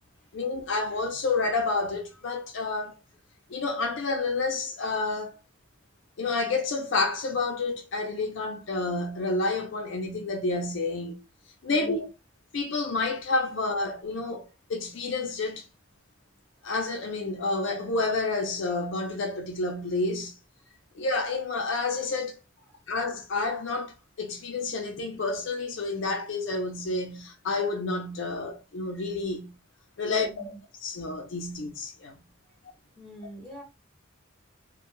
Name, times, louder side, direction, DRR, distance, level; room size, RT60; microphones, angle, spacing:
voice 1, 0.3-3.0 3.5-5.4 6.2-11.2 11.6-12.1 12.5-15.7 16.6-20.3 20.9-22.3 22.9-29.5 30.0-30.5 30.8-32.2, left 3 dB, 70° left, 0.5 m, -29 dB
voice 2, 30.0-30.6 32.4-32.5 32.9-33.6, equal, 5° left, 1.0 m, -44 dB
2.1 x 2.1 x 2.9 m
head